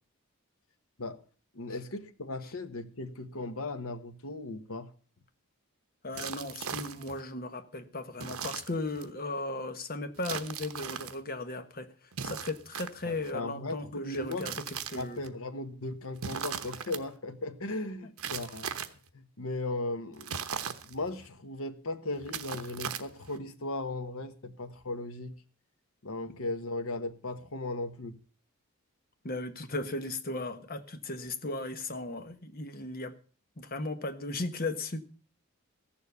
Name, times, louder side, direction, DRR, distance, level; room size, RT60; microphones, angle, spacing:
voice 1, 1.5-4.9 13.0-14.5 14.9-20.4 20.8-25.3 26.0-28.2, left 2 dB, 70° left, 1.3 m, -37 dB
voice 2, 6.0-11.9 12.2-14.5 14.9-15.2 18.0-18.1 29.2-33.1 33.6-35.0, left 2 dB, 40° left, 1.2 m, -36 dB
sound 1, 6.1-7.2 8.2-9.1 10.2-11.2 12.1-13.3 14.1-15.3 16.2-17.0 18.2-19.1 20.2-21.3 22.2-23.4, right 7 dB, 75° right, 1.0 m, -38 dB
15.0 x 7.2 x 6.8 m
head